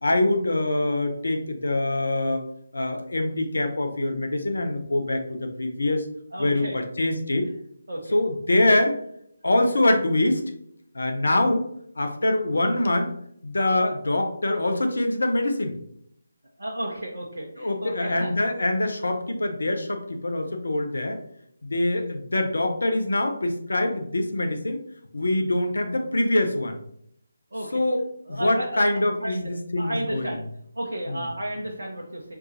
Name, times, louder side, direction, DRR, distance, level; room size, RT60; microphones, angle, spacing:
voice 1, 0.0-2.5 2.7-6.1 6.4-7.5 8.1-9.0 9.4-10.4 10.9-11.7 12.0-13.1 13.4-15.8 17.6-21.2 21.6-24.8 25.1-26.8 27.7-28.0 28.3-30.3 31.1-31.2, left 1 dB, 60° left, 5 dB, 0.8 m, -24 dB
voice 2, 6.3-6.8 7.9-8.2 13.7-13.8 16.6-18.3 27.5-27.8 28.2-28.8 29.2-29.5 29.8-30.4 30.7-32.4, right 1 dB, 65° right, -1 dB, 0.8 m, -33 dB
4.7 x 3.7 x 2.7 m, 0.70 s
figure-of-eight pair, 150°, 0 cm